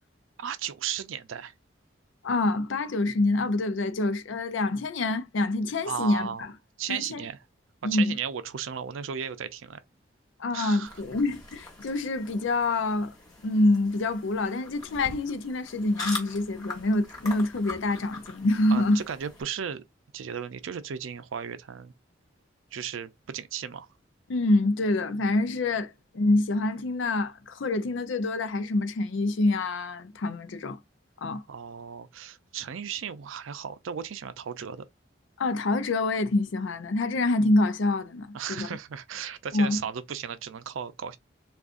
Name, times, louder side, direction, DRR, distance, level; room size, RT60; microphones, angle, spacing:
voice 1, 0.4-1.5 5.8-6.5 6.8-7.4 7.9-9.8 10.5-10.9 18.7-19.8 20.1-21.9 22.7-23.9 31.5-34.8 38.3-41.2, right 8 dB, 90° right, 0.4 m, -35 dB
voice 2, 2.2-6.5 6.9-7.2 7.8-8.2 10.4-13.1 13.4-19.0 24.3-30.8 31.2-31.4 35.4-38.7 39.5-39.8, left 2 dB, 80° left, 0.5 m, -26 dB
sound 1, 10.8-19.4, left 3 dB, 20° left, 1.0 m, -42 dB
3.6 x 2.4 x 2.4 m
head